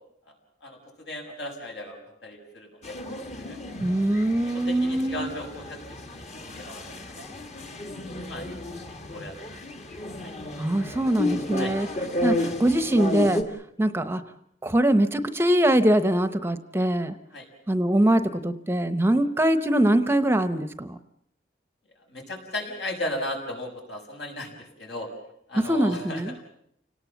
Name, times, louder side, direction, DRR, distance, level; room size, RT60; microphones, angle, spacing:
voice 1, 0.6-3.0 3.3-3.6 4.5-6.2 6.5-7.3 8.3-8.4 8.8-9.6 10.2-10.3 11.6-11.7 17.3-17.5 22.1-25.1 25.5-26.2, left 1 dB, 70° left, 2 dB, 6.5 m, -36 dB
sound 1, 2.8-13.4, left 2 dB, 40° left, 2.0 m, -33 dB
voice 2, 3.8-5.3 10.6-11.9 12.2-13.4 13.8-14.2 14.6-17.2 17.7-21.0 25.5-26.4, right 1 dB, 15° right, 11 dB, 0.9 m, -23 dB
29.5 x 19.0 x 7.2 m, 0.74 s
head